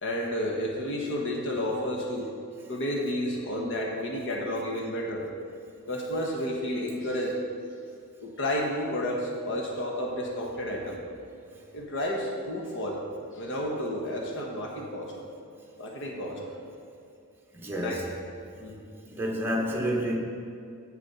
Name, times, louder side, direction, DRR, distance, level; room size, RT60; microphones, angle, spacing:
voice 1, 0.0-2.3 2.7-5.3 5.9-7.4 8.2-11.0 11.7-13.0 13.3-15.1 15.8-16.4 17.7-18.0 18.6-18.9, left 1 dB, 60° left, 0 dB, 1.2 m, -31 dB
voice 2, 17.5-18.1 19.0-20.2, equal, 10° right, -2 dB, 1.2 m, -29 dB
8.1 x 6.8 x 5.7 m, 2.5 s
head